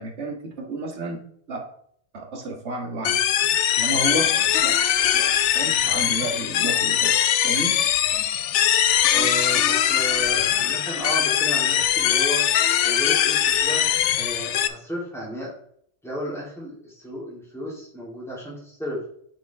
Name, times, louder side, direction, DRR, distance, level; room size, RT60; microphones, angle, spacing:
voice 1, 0.0-1.7 2.1-3.2 3.8-4.8 5.1-7.2 7.4-7.8, right 2 dB, 70° right, 2 dB, 1.8 m, -31 dB
sound 1, 3.0-14.7, left 10 dB, 80° left, 0.9 m, -21 dB
voice 2, 9.1-12.5 12.8-13.9 14.2-15.5 16.0-19.0, equal, ahead, -5 dB, 3.3 m, -33 dB
9.2 x 5.4 x 3.6 m, 0.63 s
omnidirectional pair, 1.2 m